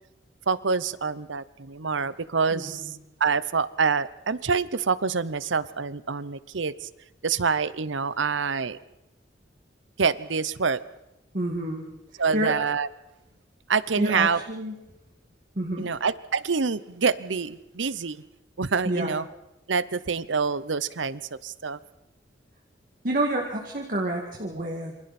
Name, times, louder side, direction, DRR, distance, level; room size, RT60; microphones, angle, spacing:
voice 1, 0.5-2.9 3.2-6.9 7.2-8.8 10.0-10.8 12.2-12.9 13.7-14.4 15.8-18.2 18.6-19.2 19.7-21.8, right 5 dB, 80° right, 17 dB, 0.8 m, -26 dB
voice 2, 11.3-11.9 12.3-12.5 14.0-14.8 15.6-15.9 18.9-19.1 23.0-25.0, right 1 dB, 45° right, 1 dB, 2.2 m, -28 dB
27.5 x 26.0 x 4.3 m, 0.92 s
head